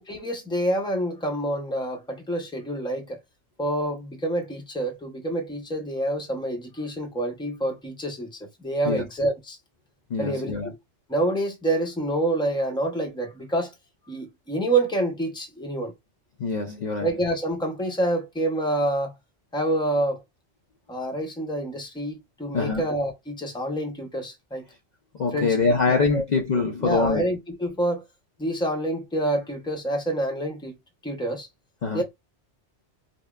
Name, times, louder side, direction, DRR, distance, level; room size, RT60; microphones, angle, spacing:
voice 1, 0.0-3.2 3.6-9.6 10.2-10.7 11.1-13.7 14.1-15.9 17.0-19.1 19.5-20.2 20.9-24.6 25.3-26.2 26.8-28.0 28.4-30.8 31.0-31.5 31.9-32.0, right 1 dB, 5° left, 0.6 m, -27 dB
voice 2, 10.1-10.7 16.4-17.1 22.5-22.9 25.1-27.2 31.8-32.0, left 4 dB, 50° left, 0.6 m, -24 dB
5.2 x 2.1 x 2.3 m
omnidirectional pair, 1.2 m